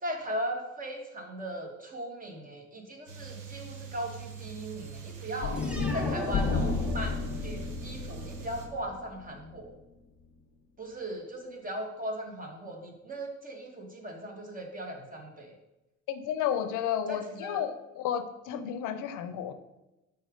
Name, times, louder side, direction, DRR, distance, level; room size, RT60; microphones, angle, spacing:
voice 1, 0.0-5.6 5.9-7.1 7.4-9.7 10.8-15.5 17.1-17.6, right 1 dB, 30° right, 2 dB, 1.3 m, -38 dB
sound 1, 3.1-8.7, right 7 dB, 85° right, 1.1 m, -43 dB
sound 2, 5.4-9.7, left 4 dB, 40° left, 0.6 m, -32 dB
sound 3, 5.5-7.4, equal, 5° right, 0.8 m, -41 dB
voice 2, 16.1-19.5, left 9 dB, 90° left, 10 dB, 0.6 m, -32 dB
5.3 x 3.6 x 4.9 m, 0.97 s
cardioid pair, 90°, 30 cm